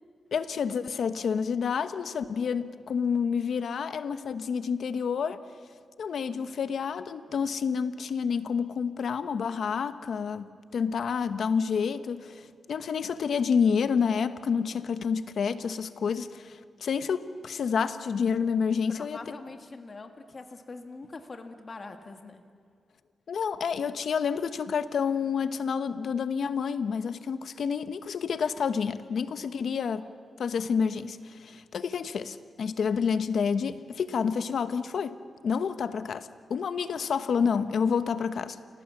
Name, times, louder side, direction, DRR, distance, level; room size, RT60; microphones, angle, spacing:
voice 1, 0.3-5.4 6.0-19.2 23.3-30.1 30.4-35.2 35.4-38.6, left 6 dB, 75° left, 11 dB, 1.0 m, -29 dB
voice 2, 18.9-22.4, left 3 dB, 40° left, 5 dB, 2.0 m, -43 dB
29.0 x 18.0 x 7.3 m, 2.2 s
cardioid pair, 90°, 0 cm